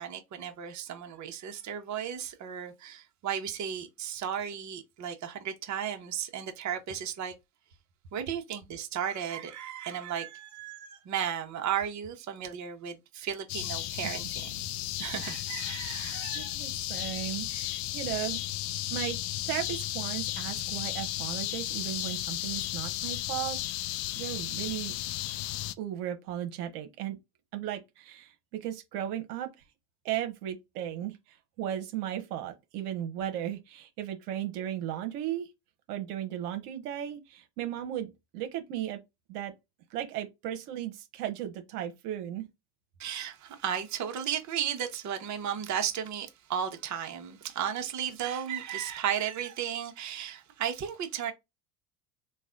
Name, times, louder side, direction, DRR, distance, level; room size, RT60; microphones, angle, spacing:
voice 1, 0.0-7.3 8.1-14.6 15.0-16.6 43.0-51.3, right 9 dB, 40° right, 1.0 m, -34 dB
sound 1, 13.5-25.7, left 15 dB, 60° left, 0.6 m, -34 dB
voice 2, 16.3-18.4 18.9-19.2 19.4-23.6 24.2-24.9 25.8-27.2 27.5-29.5 30.0-35.5 35.9-39.0 39.3-39.5 39.9-42.5, right 11 dB, 75° right, 1.0 m, -36 dB
3.2 x 2.4 x 3.7 m
hypercardioid pair, 85°, 46 cm